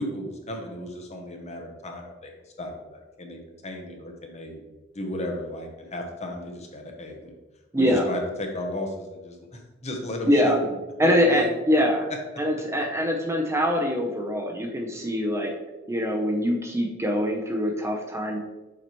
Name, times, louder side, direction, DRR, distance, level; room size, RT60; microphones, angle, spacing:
voice 1, 0.0-2.3 2.6-4.6 4.9-7.3 7.8-10.7 11.0-11.5, left 1 dB, 35° left, 2 dB, 0.9 m, -35 dB
voice 2, 7.7-8.0 10.2-10.6 11.0-12.1 12.4-15.5 15.9-18.4, equal, 15° right, 0 dB, 0.7 m, -23 dB
7.1 x 4.7 x 3.0 m, 1.1 s
head